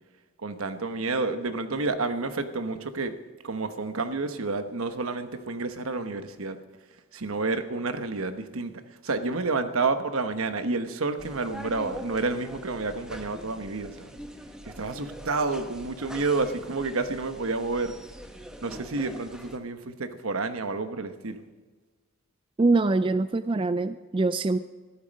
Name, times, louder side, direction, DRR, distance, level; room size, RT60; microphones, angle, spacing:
voice 1, 0.4-3.1 3.4-6.6 7.1-8.7 9.0-14.1 14.6-17.9 18.6-21.4, right 3 dB, 75° right, 9 dB, 1.1 m, -29 dB
sound 1, 11.2-19.6, equal, 5° right, 0.9 m, -43 dB
voice 2, 22.6-24.6, right 3 dB, 25° right, 12 dB, 0.3 m, -24 dB
14.0 x 12.0 x 5.2 m, 1.4 s
head